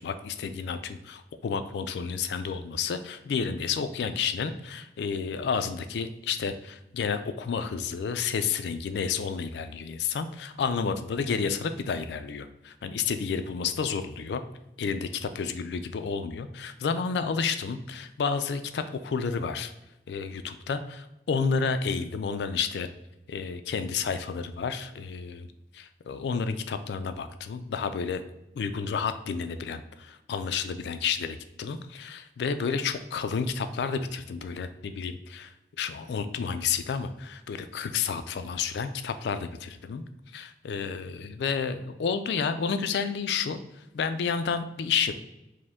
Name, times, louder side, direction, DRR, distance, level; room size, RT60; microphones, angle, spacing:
voice 1, 0.0-14.4 14.8-19.7 20.1-22.9 23.3-25.5 25.7-28.2 28.6-40.0 40.3-45.1, left 5 dB, 75° left, 10 dB, 0.3 m, -31 dB
5.1 x 2.1 x 3.5 m, 0.90 s
head